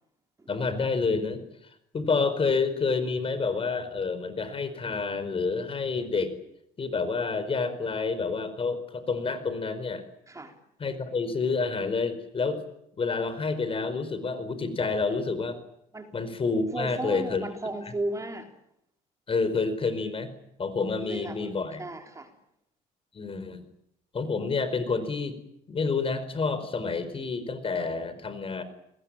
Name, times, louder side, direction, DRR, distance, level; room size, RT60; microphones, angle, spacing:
voice 1, 0.5-1.4 1.9-6.3 6.8-10.0 10.8-12.6 13.0-15.6 16.1-17.4 19.3-20.3 20.6-21.8 23.1-23.6 24.1-25.4 25.7-28.6, left 4 dB, 35° left, 12 dB, 4.8 m, -28 dB
voice 2, 10.3-10.6 15.9-16.1 16.7-18.5 21.0-22.3, right 2 dB, 20° right, 4 dB, 3.8 m, -35 dB
29.0 x 21.5 x 9.0 m, 0.78 s
cardioid pair, 110°, 17 cm